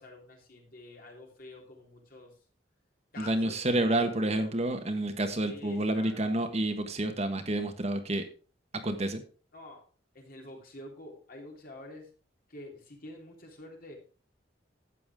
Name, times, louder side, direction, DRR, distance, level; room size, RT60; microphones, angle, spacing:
voice 1, 0.0-2.3 3.1-4.6 5.4-6.3 9.5-9.8 10.1-12.1 12.5-14.0, left 1 dB, 55° left, 1 dB, 3.5 m, -48 dB
voice 2, 3.2-8.2 8.8-9.2, right 1 dB, 35° right, 6 dB, 1.3 m, -29 dB
12.5 x 8.4 x 3.6 m, 0.37 s
head